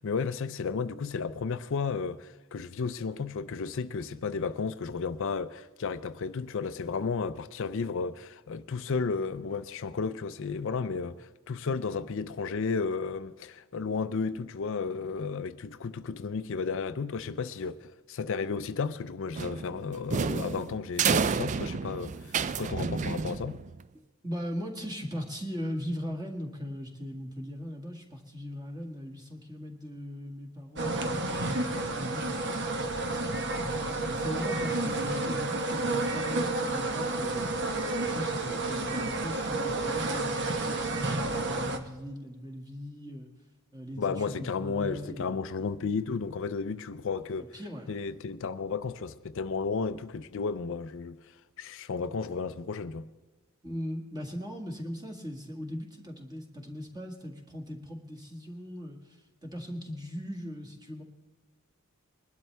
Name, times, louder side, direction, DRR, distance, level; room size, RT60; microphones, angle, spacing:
voice 1, 0.0-23.6 44.0-47.6 47.9-51.2 51.6-53.1, left 5 dB, 60° left, 0.4 m, -33 dB
sound 1, 19.3-23.8, right 5 dB, 35° right, 0.3 m, -30 dB
voice 2, 24.2-32.7 33.3-37.6 38.0-43.3 43.7-45.4 47.5-47.9 53.6-61.0, equal, 20° right, 1.9 m, -39 dB
sound 2, 30.8-41.8, right 2 dB, 50° right, 1.1 m, -30 dB
21.5 x 12.0 x 3.4 m
head